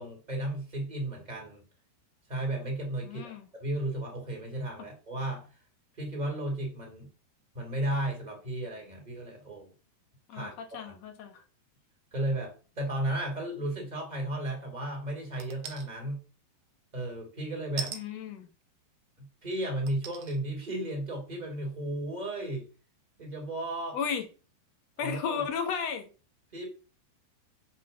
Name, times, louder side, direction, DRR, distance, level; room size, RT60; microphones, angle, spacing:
voice 1, 0.0-1.6 2.3-5.5 6.0-7.1 7.5-9.7 10.3-10.5 10.8-10.9 12.1-16.2 16.9-17.9 19.2-22.6 23.2-24.0 25.0-25.4 26.5-26.7, right 1 dB, 10° right, 3.0 m, -34 dB
voice 2, 3.0-3.5 10.3-11.4 17.9-18.5 23.9-24.3 25.0-26.1, left 6 dB, 60° left, 1.9 m, -34 dB
sound 1, 15.4-15.9 17.8-18.0 19.0-19.1 19.9-20.4 20.9-21.0, right 7 dB, 65° right, 1.9 m, -38 dB
7.6 x 6.1 x 6.9 m
omnidirectional pair, 4.7 m